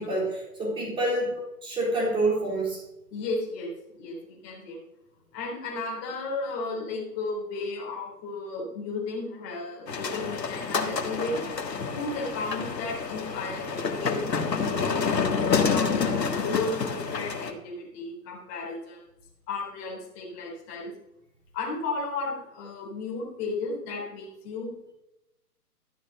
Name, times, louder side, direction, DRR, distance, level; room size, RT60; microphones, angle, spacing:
voice 1, 0.0-1.3 1.6-2.8, right 2 dB, 10° right, -3 dB, 3.7 m, -27 dB
voice 2, 3.1-4.8 5.3-11.4 11.9-14.2 14.5-15.9 16.4-19.0 19.5-20.9 21.5-24.9, left 3 dB, 25° left, -1 dB, 3.5 m, -34 dB
sound 1, 9.9-17.5, left 5 dB, 80° left, 1.9 m, -28 dB
13.0 x 6.6 x 6.5 m, 0.92 s
hypercardioid pair, 145°, 49 cm